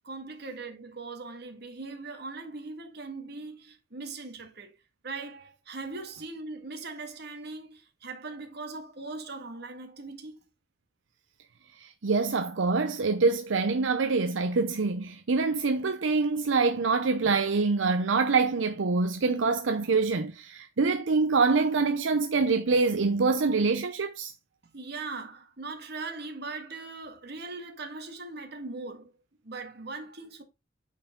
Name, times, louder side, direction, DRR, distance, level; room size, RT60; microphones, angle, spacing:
voice 1, 0.0-4.7 5.0-10.4 24.7-29.1 29.4-30.4, right 3 dB, 60° right, 1.9 m, -40 dB
voice 2, 11.8-24.3, right 4 dB, 90° right, 0.6 m, -25 dB
9.0 x 4.6 x 3.7 m
head